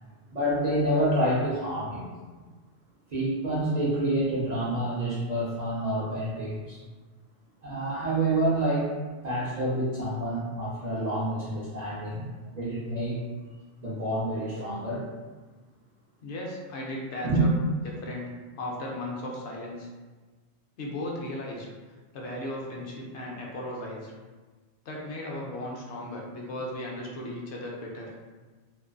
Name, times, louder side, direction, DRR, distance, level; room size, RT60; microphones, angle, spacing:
voice 1, 0.3-2.0 3.1-6.8 7.6-8.9 9.2-13.2 13.8-15.0 17.2-17.4, right 1 dB, 50° right, -8 dB, 0.5 m, -28 dB
voice 2, 16.2-17.5 17.8-18.3 18.6-19.9 20.8-21.7 22.1-24.1 24.9-28.1, left 1 dB, 80° left, -2 dB, 0.9 m, -36 dB
2.5 x 2.4 x 2.2 m, 1.3 s
omnidirectional pair, 1.2 m